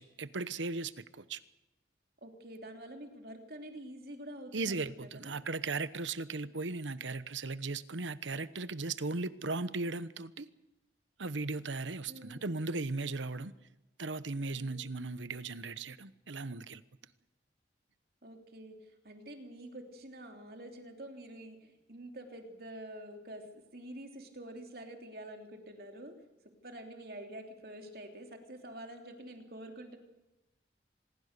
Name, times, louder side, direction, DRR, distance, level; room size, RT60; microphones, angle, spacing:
voice 1, 0.0-1.4 4.5-10.5 11.2-13.5 14.0-16.8, right 3 dB, 90° right, 15 dB, 1.0 m, -37 dB
voice 2, 2.2-4.8 5.2-5.3 12.1-12.4 14.5-14.8 18.2-26.1 26.6-30.0, right 1 dB, 55° right, 4 dB, 3.2 m, -47 dB
26.0 x 20.5 x 6.8 m, 0.95 s
head